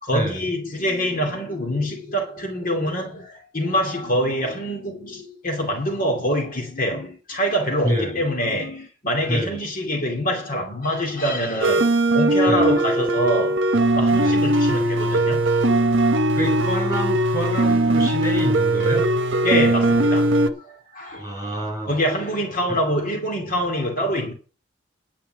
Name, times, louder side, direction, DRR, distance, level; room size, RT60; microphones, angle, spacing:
voice 1, 0.0-13.7 13.9-15.4 19.4-21.3 21.9-24.3, equal, 40° left, 2.6 m, -25 dB
sound 1, 11.6-20.5, right 1 dB, 65° right, 1.0 m, -19 dB
voice 2, 16.3-19.1 21.2-22.0 22.7-22.8, equal, 20° right, 7.4 m, -27 dB
10.0 x 5.9 x 7.6 m
head